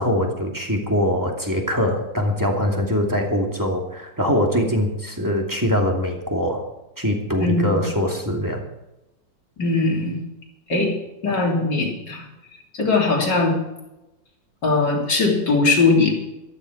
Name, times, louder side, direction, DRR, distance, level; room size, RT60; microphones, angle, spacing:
voice 1, 0.0-6.6 7.0-8.6, equal, 10° right, 0 dB, 2.5 m, -22 dB
voice 2, 7.4-7.9 9.6-10.2 10.7-10.9 11.2-12.3 12.7-13.6 14.6-16.1, left 3 dB, 65° left, -1 dB, 3.9 m, -20 dB
15.0 x 13.5 x 4.8 m, 0.97 s
omnidirectional pair, 2.0 m